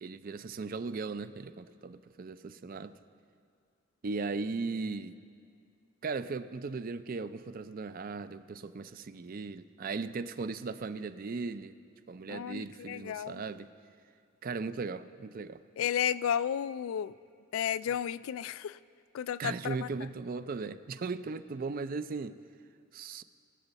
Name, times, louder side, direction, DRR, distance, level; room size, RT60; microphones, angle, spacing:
voice 1, 0.0-2.9 4.0-5.2 6.0-11.7 12.1-13.7 14.4-15.6 19.4-22.4 22.9-23.2, right 4 dB, 45° right, 12 dB, 0.4 m, -37 dB
voice 2, 12.3-13.4 15.8-17.1 17.5-18.8 19.1-19.9, left 9 dB, 75° left, 17 dB, 0.3 m, -33 dB
23.5 x 8.0 x 4.1 m, 2.3 s
head